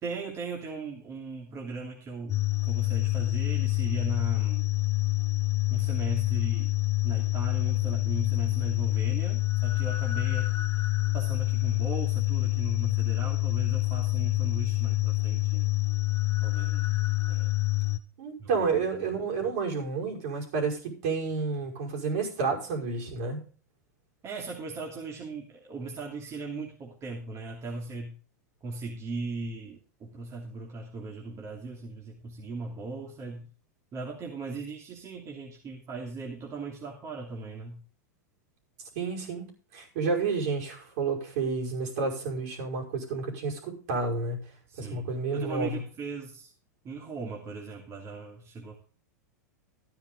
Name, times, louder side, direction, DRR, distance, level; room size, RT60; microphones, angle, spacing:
voice 1, 0.0-4.7 5.7-6.7 7.0-10.5 11.1-15.7 16.4-17.0 17.3-17.5 18.4-19.1 19.4-19.5 24.2-28.2 28.6-33.5 33.9-37.8 44.7-46.5 46.8-48.8, right 3 dB, 30° right, 0 dB, 2.8 m, -38 dB
sound 1, 2.3-18.0, left 21 dB, 30° left, 0.8 m, -27 dB
voice 2, 18.2-23.4 39.0-44.4 44.8-45.8, right 4 dB, 60° right, 0 dB, 5.6 m, -30 dB
13.5 x 9.7 x 3.8 m, 0.39 s
hypercardioid pair, 105°, 9 cm